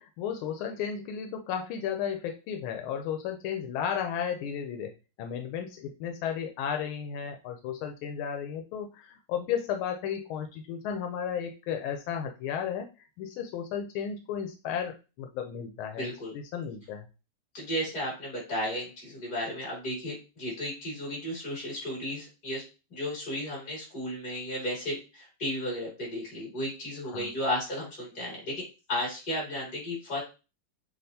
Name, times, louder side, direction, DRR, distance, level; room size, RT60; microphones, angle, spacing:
voice 1, 0.0-4.9 5.2-12.9 13.2-16.1 16.5-17.1 27.1-27.3, left 8 dB, 90° left, 4 dB, 1.4 m, -34 dB
voice 2, 16.0-16.3 17.5-22.6 22.9-28.6 28.9-30.2, equal, 45° left, -4 dB, 2.9 m, -34 dB
6.5 x 2.3 x 2.7 m, 0.30 s
omnidirectional pair, 2.2 m